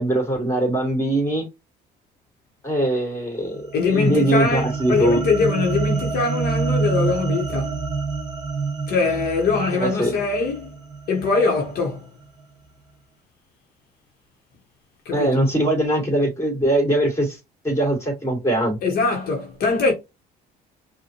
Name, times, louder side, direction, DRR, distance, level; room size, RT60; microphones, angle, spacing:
voice 1, 0.0-1.4 2.6-3.7 3.9-5.2 9.8-10.1 15.1-17.4 17.6-18.8, right 1 dB, 15° left, 2.5 m, -21 dB
sound 1, 3.5-12.0, right 4 dB, 20° right, 1.3 m, -27 dB
voice 2, 3.7-7.8 8.9-10.7 11.1-12.1 15.0-15.5 18.8-19.9, left 4 dB, 65° left, 1.3 m, -22 dB
5.3 x 2.5 x 3.0 m
cardioid pair, 110°, 17 cm